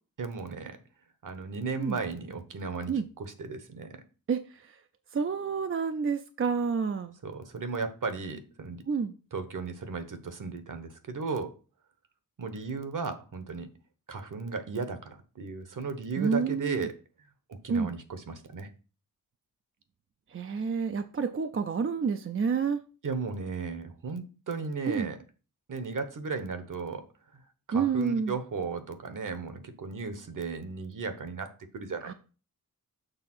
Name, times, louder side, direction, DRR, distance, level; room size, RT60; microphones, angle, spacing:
voice 1, 0.2-0.8 1.2-4.0 7.2-8.8 9.3-11.5 12.4-13.7 14.1-16.9 17.5-18.7 23.0-25.2 25.7-27.0 27.7-31.5 31.7-32.1, right 4 dB, 60° right, 1.1 m, -35 dB
voice 2, 4.3-4.8 5.1-7.2 8.9-9.1 16.2-16.9 17.7-17.9 20.3-22.8 24.9-25.1 27.7-28.3 32.0-32.1, right 5 dB, 40° right, 0.5 m, -29 dB
6.8 x 3.5 x 6.0 m
wide cardioid pair, 110°, 35 cm